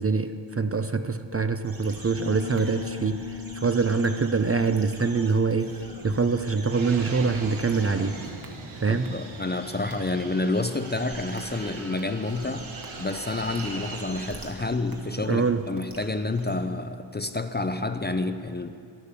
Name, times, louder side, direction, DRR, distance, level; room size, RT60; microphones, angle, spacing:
voice 1, 0.0-5.8 6.0-8.2 8.8-9.2 15.3-15.7, right 4 dB, 30° right, 9 dB, 0.5 m, -24 dB
sound 1, 1.6-8.5 9.0-9.1 9.9-10.0 10.6-12.0 12.3-16.6, right 2 dB, 45° right, 1.8 m, -44 dB
Piano, 2.2-10.7, left 11 dB, 70° left, 0.9 m, -43 dB
Fixed-wing aircraft airplane, 6.7-14.5, right 3 dB, 90° right, 1.5 m, -41 dB
voice 2, 8.9-12.7 13.0-18.7, left 2 dB, 20° left, 9 dB, 0.5 m, -29 dB
11.5 x 11.5 x 6.9 m, 2.3 s
wide cardioid pair, 110°, 47 cm